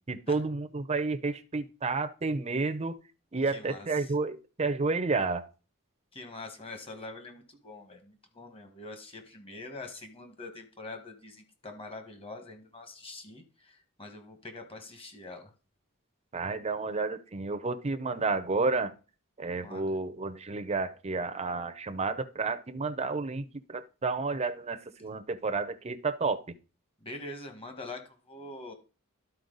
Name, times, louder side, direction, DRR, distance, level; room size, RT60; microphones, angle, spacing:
voice 1, 0.1-3.0 3.3-5.4 16.3-18.9 19.4-26.4, right 3 dB, 30° right, 0.6 m, -31 dB
voice 2, 3.5-4.1 6.1-15.5 19.6-20.0 27.0-28.7, left 2 dB, 25° left, 1.5 m, -44 dB
12.0 x 4.4 x 3.9 m
head